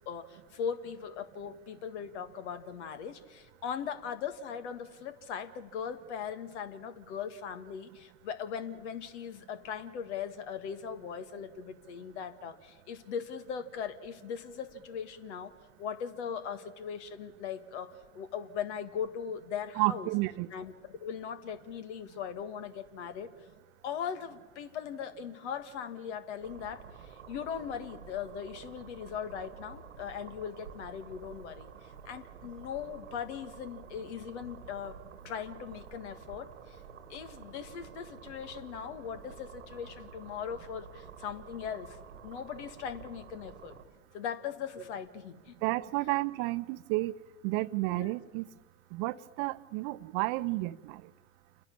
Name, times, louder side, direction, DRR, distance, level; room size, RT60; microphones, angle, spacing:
voice 1, 0.1-15.5 15.8-20.1 20.5-23.3 23.8-35.0 35.2-36.8 37.1-43.7 44.1-45.5 47.9-48.1, left 7 dB, 70° left, 10 dB, 1.9 m, -39 dB
voice 2, 19.8-20.5 45.6-47.1 47.4-48.5 48.9-51.0, right 21 dB, 55° right, 15 dB, 0.8 m, -31 dB
sound 1, 26.4-43.8, right 6 dB, 90° right, 1.6 m, -50 dB
28.5 x 10.5 x 8.6 m, 1.3 s
hypercardioid pair, 85°, 35 cm